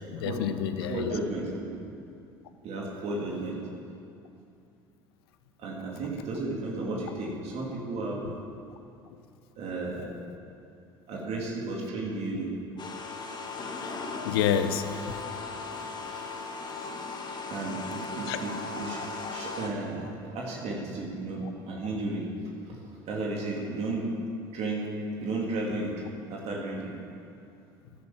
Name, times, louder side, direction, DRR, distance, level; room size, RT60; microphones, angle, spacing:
voice 1, 0.1-1.1 8.2-8.3 13.8-15.2 17.1-17.2 18.3-18.4, left 8 dB, 80° left, 10 dB, 0.8 m, -29 dB
voice 2, 0.8-1.7 2.6-3.6 5.6-8.2 9.6-10.1 11.1-12.5 16.0-16.4 17.5-19.0 19.3-22.3 22.7-24.1 24.5-25.0 25.2-26.0 26.3-26.9, right 2 dB, 55° right, -2 dB, 3.0 m, -33 dB
sound 1, 12.8-19.7, left 4 dB, 35° left, 2.2 m, -37 dB
12.5 x 11.0 x 7.6 m, 2.6 s
hypercardioid pair, 65°, 13 cm